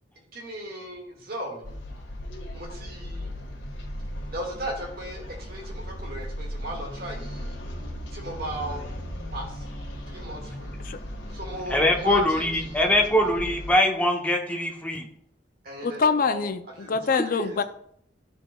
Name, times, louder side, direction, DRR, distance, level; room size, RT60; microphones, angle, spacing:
voice 1, 0.3-1.7 2.5-3.3 4.3-7.6 8.1-8.8 9.3-9.6 10.1-10.7 11.3-12.9 15.6-16.5 16.8-17.6, right 1 dB, 60° right, 0 dB, 1.9 m, -36 dB
sound 1, 1.6-13.7, equal, 90° left, 1.9 m, -37 dB
voice 2, 11.7-15.0, left 1 dB, 10° left, 2 dB, 1.0 m, -22 dB
voice 3, 15.8-17.6, left 5 dB, 50° left, 10 dB, 0.5 m, -25 dB
14.0 x 4.9 x 2.3 m, 0.68 s
head